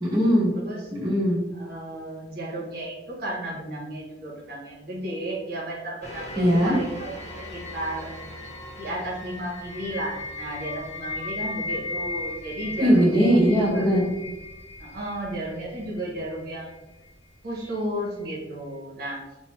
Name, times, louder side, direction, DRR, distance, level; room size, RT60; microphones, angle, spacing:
voice 1, 0.0-0.5 0.9-1.4 6.4-6.8 12.8-14.0, equal, 20° right, -7 dB, 0.7 m, -20 dB
voice 2, 0.5-0.9 1.5-7.1 7.5-8.2 8.8-13.9 14.8-16.8 17.4-19.2, right 1 dB, 55° right, -3 dB, 0.8 m, -33 dB
sound 1, 6.0-17.1 17.6-17.7, left 2 dB, 35° left, 0.9 m, -37 dB
3.1 x 2.0 x 3.0 m, 1.0 s
head